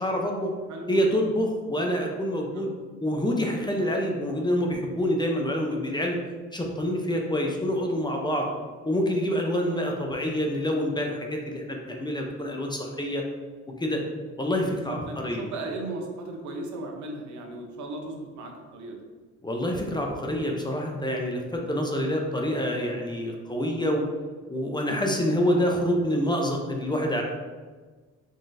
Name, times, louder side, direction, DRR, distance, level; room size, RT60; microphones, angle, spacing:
voice 1, 0.0-0.5 0.9-2.7 3.0-6.2 6.5-8.5 8.8-13.2 13.8-14.0 14.4-15.5 19.4-24.0 24.5-27.2, equal, 15° left, 1 dB, 0.6 m, -27 dB
voice 2, 0.7-1.3 2.5-2.7 8.5-8.7 14.9-19.0, right 2 dB, 70° right, 2 dB, 0.8 m, -37 dB
3.9 x 3.7 x 2.5 m, 1.4 s
cardioid pair, 90°, 30 cm